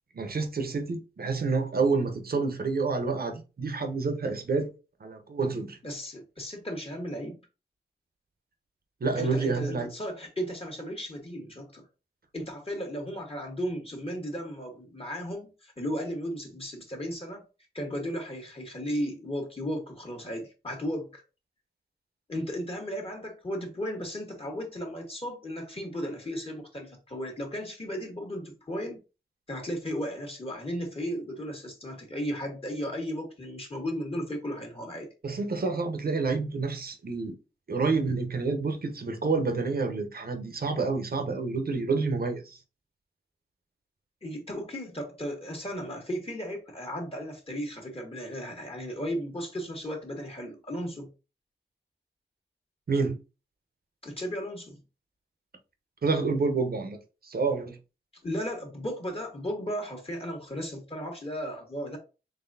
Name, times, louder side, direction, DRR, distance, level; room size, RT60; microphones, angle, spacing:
voice 1, 0.1-4.7 5.0-5.8 9.0-9.9 35.2-37.4 37.7-42.6 52.9-53.2 56.0-57.0 57.2-57.8, right 4 dB, 50° right, 0.8 m, -28 dB
voice 2, 5.8-7.4 9.1-11.8 12.3-17.4 17.7-21.2 22.3-29.0 29.5-35.1 44.2-51.1 54.0-54.8 58.2-62.0, equal, 30° left, 1.4 m, -35 dB
4.0 x 3.1 x 2.7 m
cardioid pair, 55°, 19 cm